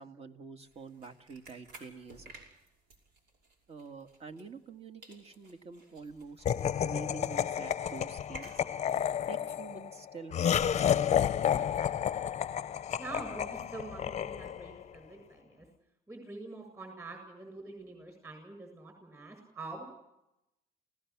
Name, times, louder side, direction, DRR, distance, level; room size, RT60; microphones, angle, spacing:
voice 1, 0.0-2.3 3.7-6.4 6.8-8.5 9.3-10.6, right 4 dB, 35° right, 7 dB, 1.9 m, -47 dB
sound 1, 0.6-4.8 5.0-9.1, right 2 dB, 80° right, 5.7 m, -56 dB
Laughter, 6.5-14.8, left 9 dB, 40° left, 0.7 m, -31 dB
voice 2, 13.0-15.7 16.1-19.8, right 3 dB, 15° right, 4 dB, 7.2 m, -45 dB
29.5 x 17.5 x 6.1 m, 0.88 s
cardioid pair, 110°, 17 cm